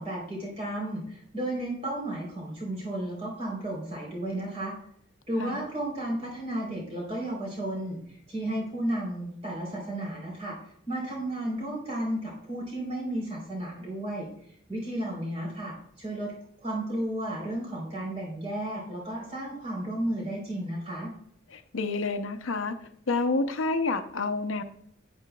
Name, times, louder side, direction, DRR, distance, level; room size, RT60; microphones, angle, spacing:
voice 1, 0.0-4.7 5.3-10.6 10.9-14.3 14.7-16.3 16.6-21.1, right 1 dB, 30° right, -2 dB, 3.6 m, -33 dB
voice 2, 21.5-22.8 23.1-24.6, left 3 dB, 80° left, 8 dB, 0.7 m, -28 dB
10.5 x 9.3 x 2.3 m, 0.66 s
head